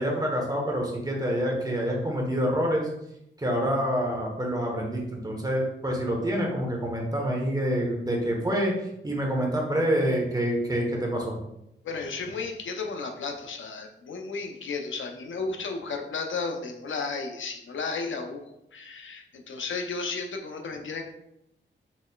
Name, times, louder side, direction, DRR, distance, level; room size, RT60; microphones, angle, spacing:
voice 1, 0.0-2.9 3.4-8.7 9.0-11.3, equal, 20° right, -1 dB, 1.0 m, -27 dB
voice 2, 11.8-21.0, left 4 dB, 75° left, 3 dB, 0.6 m, -33 dB
4.1 x 3.1 x 2.2 m, 0.82 s
cardioid pair, 75°, 20 cm